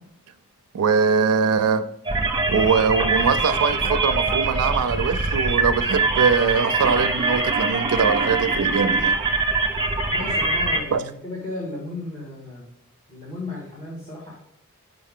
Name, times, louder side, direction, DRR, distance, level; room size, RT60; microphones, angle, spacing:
voice 1, 0.7-1.9 2.5-9.2 10.9-11.0, right 5 dB, 70° right, 0.4 m, -22 dB
sound 1, 2.0-10.8, right 3 dB, 20° right, 0.8 m, -23 dB
voice 2, 10.1-12.6 13.1-14.4, left 2 dB, 30° left, 1.6 m, -34 dB
5.5 x 5.1 x 3.6 m
head